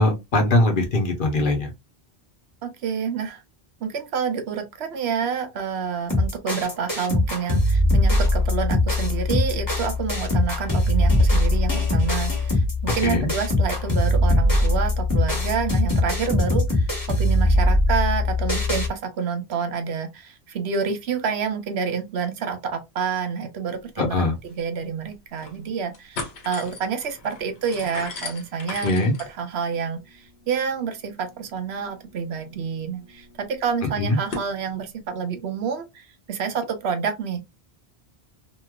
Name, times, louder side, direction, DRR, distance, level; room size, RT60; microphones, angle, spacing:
voice 1, 0.0-1.7 13.0-13.3 24.0-24.3 28.8-29.1 34.0-34.2, left 2 dB, 55° left, 1.0 m, -21 dB
voice 2, 2.6-3.4 3.8-12.6 12.9-37.4, right 6 dB, 80° right, 1.0 m, -28 dB
sound 1, 6.1-18.9, left 1 dB, 20° left, 1.3 m, -21 dB
sound 2, 24.5-24.6 25.1-25.6 25.9-34.5, left 3 dB, 80° left, 1.2 m, -39 dB
3.0 x 2.9 x 2.3 m
omnidirectional pair, 1.1 m